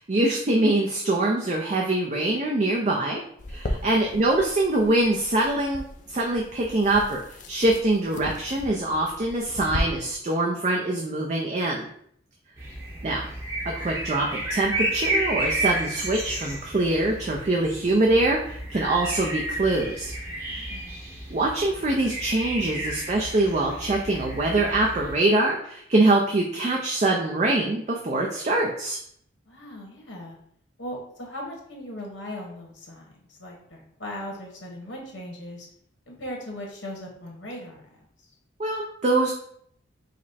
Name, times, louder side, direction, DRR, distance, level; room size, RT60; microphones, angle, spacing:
voice 1, 0.0-3.2 3.5-11.9 13.0-13.3 13.6-20.1 21.3-29.0 38.6-39.3, right 2 dB, 35° right, 0 dB, 0.4 m, -24 dB
sound 1, 3.4-9.8, left 1 dB, 40° left, 0.4 m, -38 dB
sound 2, 12.6-25.2, right 1 dB, 15° right, 0.8 m, -32 dB
voice 2, 20.5-21.0 29.4-30.4 30.8-35.7 36.1-38.0, left 1 dB, 75° left, -1 dB, 1.3 m, -39 dB
5.0 x 2.1 x 4.1 m, 0.66 s
head